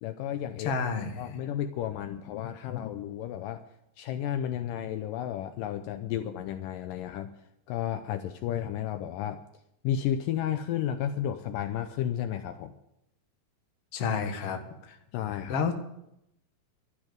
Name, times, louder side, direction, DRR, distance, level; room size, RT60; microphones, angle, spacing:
voice 1, 0.0-0.8 1.2-3.6 4.0-7.3 7.7-9.4 9.8-12.7 15.1-15.6, left 10 dB, 80° left, 9 dB, 2.3 m, -32 dB
voice 2, 0.6-1.4 13.9-14.6 14.9-15.0 15.5-15.7, left 5 dB, 50° left, 5 dB, 2.2 m, -30 dB
13.0 x 10.5 x 7.8 m, 0.83 s
omnidirectional pair, 4.0 m